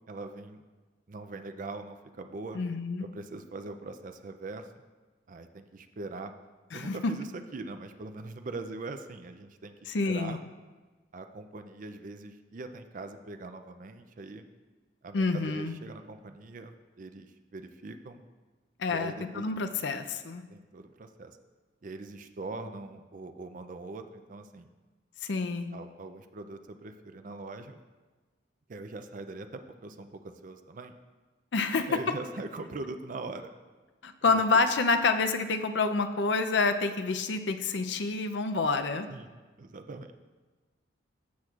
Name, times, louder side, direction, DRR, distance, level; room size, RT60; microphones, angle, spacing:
voice 1, 0.1-0.6 1.1-2.6 3.1-4.7 5.3-6.3 6.7-10.4 11.1-14.4 15.0-18.2 18.9-19.5 20.5-21.4 21.8-24.7 25.7-27.8 28.7-30.9 31.7-33.5 34.3-34.4 39.1-40.1, right 3 dB, 45° right, 7 dB, 0.4 m, -42 dB
voice 2, 2.5-3.1 6.7-7.1 9.9-10.4 15.1-15.8 18.8-20.4 25.2-25.7 31.5-31.9 34.0-39.1, left 3 dB, 70° left, 8 dB, 0.5 m, -28 dB
14.5 x 6.0 x 2.4 m, 1.3 s
head